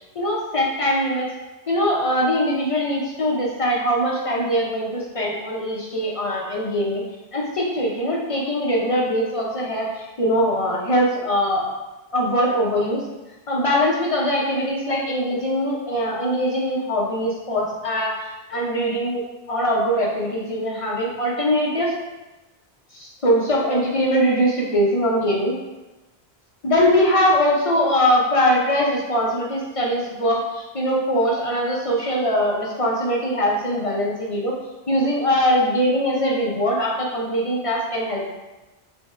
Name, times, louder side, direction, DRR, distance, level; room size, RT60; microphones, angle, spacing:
voice 1, 0.2-1.3 1.7-7.0 7.3-11.7 12.1-13.0 13.5-18.1 18.5-19.2 19.5-21.9 22.9-25.5 26.6-34.5 34.9-38.2, equal, 50° left, -3 dB, 0.4 m, -22 dB
5.0 x 2.0 x 2.3 m, 1.1 s
omnidirectional pair, 1.1 m